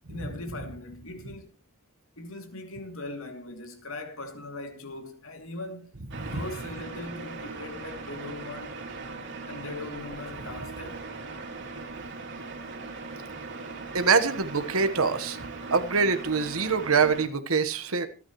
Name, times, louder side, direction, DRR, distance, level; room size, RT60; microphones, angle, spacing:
voice 1, 0.1-1.5 2.2-5.9 6.3-8.8 9.5-11.1, left 2 dB, 70° left, 2.8 m, -40 dB
sound 1, 6.1-17.3, right 3 dB, 55° right, 2.9 m, -39 dB
voice 2, 13.9-15.4 15.7-18.1, right 5 dB, 80° right, 1.3 m, -24 dB
26.5 x 9.8 x 3.1 m
head